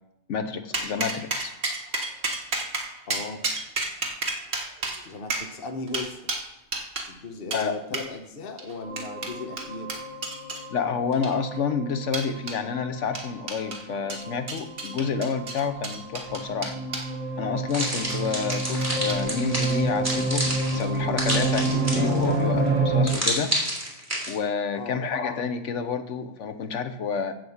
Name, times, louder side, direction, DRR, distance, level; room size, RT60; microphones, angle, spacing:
voice 1, 0.3-1.5 7.5-7.7 10.7-16.7 17.4-23.6 24.3-27.3, left 6 dB, 80° left, 9 dB, 1.2 m, -29 dB
sound 1, 0.7-7.1 7.5-7.7 7.9-8.1 8.6-10.6 11.1-11.6 12.1-12.6 13.1-13.8 14.1-17.1 17.8-18.2 18.5-19.2 19.6-19.8 20.1-20.4, right 3 dB, 60° right, 1.7 m, -32 dB
voice 2, 3.1-3.4 5.0-6.3 7.1-10.0 24.7-25.0, left 3 dB, 55° left, 5 dB, 1.1 m, -37 dB
sound 2, 8.8-23.1, right 2 dB, 40° right, 4.0 m, -29 dB
sound 3, 17.7-22.3 23.1-24.3, equal, 10° right, 2.9 m, -29 dB
7.8 x 7.8 x 7.1 m, 0.86 s
omnidirectional pair, 1.2 m